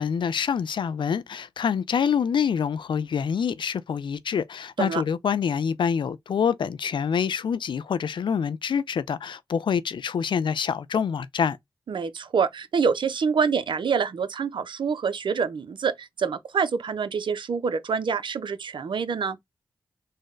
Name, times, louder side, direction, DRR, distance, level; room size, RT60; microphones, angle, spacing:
voice 1, 0.0-11.6, left 7 dB, 70° left, 0.4 m, -26 dB
voice 2, 11.9-19.4, right 6 dB, 70° right, 0.5 m, -26 dB
3.9 x 2.1 x 3.6 m
cardioid pair, 45°, 9 cm